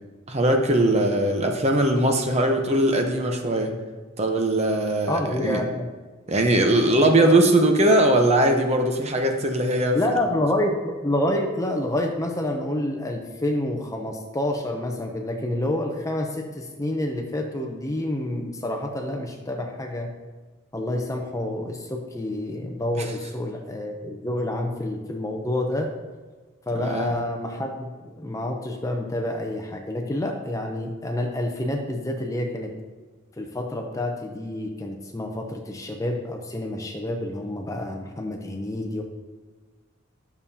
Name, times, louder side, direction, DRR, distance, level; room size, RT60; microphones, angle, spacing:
voice 1, 0.3-3.7 4.2-5.6 6.3-10.0 26.8-27.1, right 1 dB, 30° right, 3 dB, 0.9 m, -20 dB
voice 2, 5.1-5.9 7.2-7.4 9.9-20.1 20.7-25.9 26.7-32.7 33.4-39.0, left 1 dB, 15° left, 2 dB, 0.6 m, -28 dB
11.5 x 7.0 x 2.8 m, 1.3 s
head